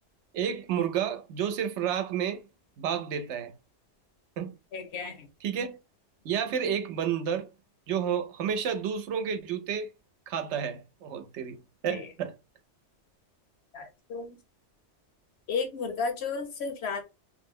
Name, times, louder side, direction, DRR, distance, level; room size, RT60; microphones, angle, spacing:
voice 1, 0.3-2.4 2.8-3.5 4.4-4.5 5.4-5.8 6.2-7.5 7.9-9.9 10.3-11.6 11.8-12.3, right 8 dB, 85° right, 0.9 m, -30 dB
voice 2, 4.7-5.3 11.9-12.1 13.7-14.4 15.5-17.0, left 5 dB, 70° left, 1.0 m, -33 dB
3.1 x 2.1 x 3.5 m
omnidirectional pair, 1.2 m